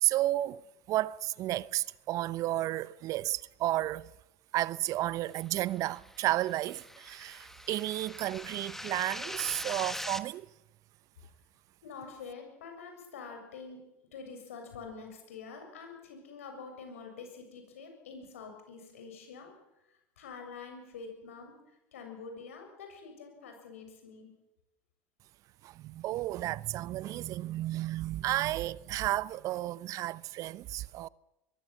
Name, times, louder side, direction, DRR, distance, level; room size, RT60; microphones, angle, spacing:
voice 1, 0.0-0.6 0.9-4.1 4.5-10.5 25.6-31.1, right 15 dB, 50° right, 0.8 m, -32 dB
sound 1, 5.8-10.2, left 1 dB, 5° left, 1.6 m, -42 dB
voice 2, 9.2-9.7 11.8-13.8 14.1-19.5 19.9-21.5 21.9-24.3, left 5 dB, 80° left, 7.2 m, -46 dB
23.0 x 22.0 x 7.6 m
hypercardioid pair, 75°, 7 cm